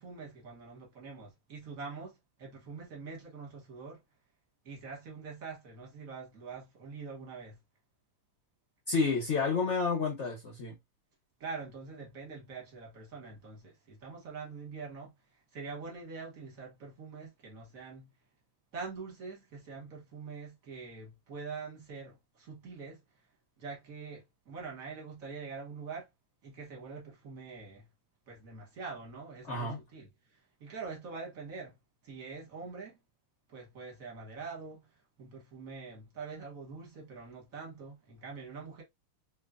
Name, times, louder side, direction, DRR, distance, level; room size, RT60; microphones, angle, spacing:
voice 1, 0.0-4.0 4.6-7.6 11.4-15.1 15.5-18.1 18.7-23.0 23.6-26.1 26.4-27.8 28.3-31.8 32.0-33.0 33.5-34.8 35.2-38.8, right 4 dB, 50° right, 1.3 m, -44 dB
voice 2, 8.9-10.8 29.5-29.8, left 4 dB, 60° left, 0.8 m, -30 dB
3.1 x 2.3 x 2.3 m
omnidirectional pair, 2.2 m